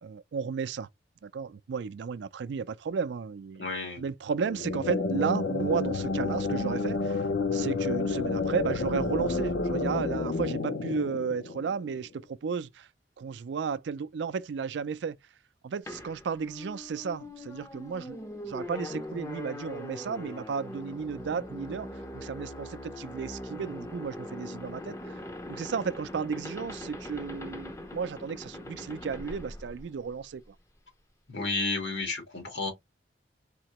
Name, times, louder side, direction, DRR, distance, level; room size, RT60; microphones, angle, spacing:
voice 1, 0.0-0.9 1.2-3.7 4.0-7.3 7.5-12.9 13.2-15.2 15.6-21.9 22.1-25.2 25.5-30.5, right 6 dB, 75° right, 0.4 m, -33 dB
voice 2, 3.6-4.0 31.3-32.7, left 3 dB, 80° left, 2.1 m, -32 dB
sound 1, 4.4-12.0, left 3 dB, 65° left, 0.5 m, -30 dB
sound 2, 15.9-30.4, left 1 dB, 15° left, 0.5 m, -41 dB
4.3 x 2.8 x 2.9 m
head